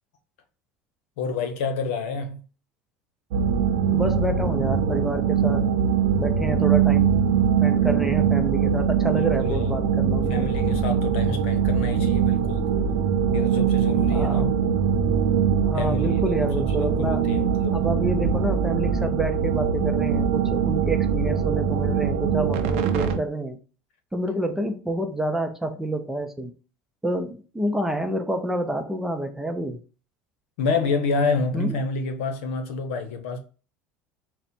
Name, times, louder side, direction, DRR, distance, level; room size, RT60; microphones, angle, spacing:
voice 1, 1.2-2.4 9.1-9.9 10.3-12.8 13.3-14.5 15.7-17.9 30.6-33.4, left 4 dB, 80° left, 0.8 m, -28 dB
sound 1, 3.3-23.2, right 7 dB, 80° right, 0.6 m, -22 dB
voice 2, 3.9-5.7 6.2-7.1 7.6-10.5 14.1-14.5 15.6-17.2 17.7-23.6 24.1-26.5 27.0-29.8 31.5-31.8, right 1 dB, 5° right, 0.5 m, -28 dB
4.2 x 2.1 x 4.2 m
supercardioid pair, 115°, 6 cm